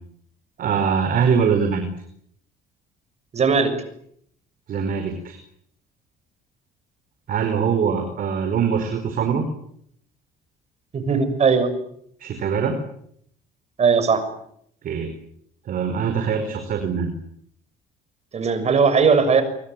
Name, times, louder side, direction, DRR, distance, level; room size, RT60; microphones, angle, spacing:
voice 1, 0.6-1.8 4.7-5.4 7.3-9.4 12.2-12.8 14.8-15.1 15.7-17.1, right 6 dB, 55° right, 6 dB, 5.0 m, -22 dB
voice 2, 3.3-3.7 10.9-11.7 13.8-14.2 18.3-19.4, right 5 dB, 40° right, 11 dB, 6.6 m, -18 dB
25.0 x 24.0 x 9.2 m, 0.70 s
cardioid pair, 110°, 17 cm